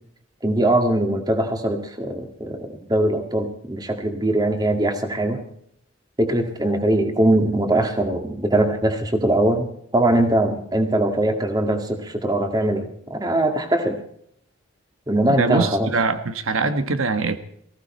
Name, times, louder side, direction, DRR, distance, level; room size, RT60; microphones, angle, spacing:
voice 1, 0.4-5.4 6.2-14.0 15.1-15.9, right 1 dB, 20° right, 1.8 m, -21 dB
voice 2, 15.3-17.4, right 4 dB, 85° right, 1.2 m, -23 dB
19.5 x 15.5 x 4.4 m
head